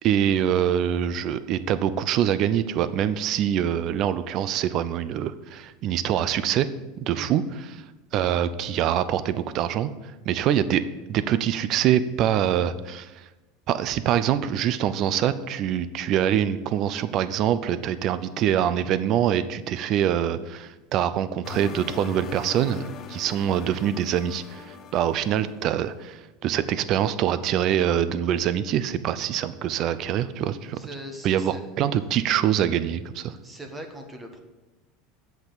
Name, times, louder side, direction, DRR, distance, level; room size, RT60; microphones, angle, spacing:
voice 1, 0.0-6.7 7.0-7.4 7.7-7.8 8.1-9.9 10.3-10.8 11.1-13.1 13.7-30.8 31.2-33.4, right 10 dB, 50° right, 14 dB, 0.6 m, -24 dB
sound 1, 21.4-25.8, left 8 dB, 40° left, 0.7 m, -41 dB
voice 2, 30.6-31.7 33.4-34.4, right 1 dB, 15° right, 4 dB, 1.4 m, -40 dB
8.2 x 5.9 x 6.8 m, 1.1 s
supercardioid pair, 125°, 0 cm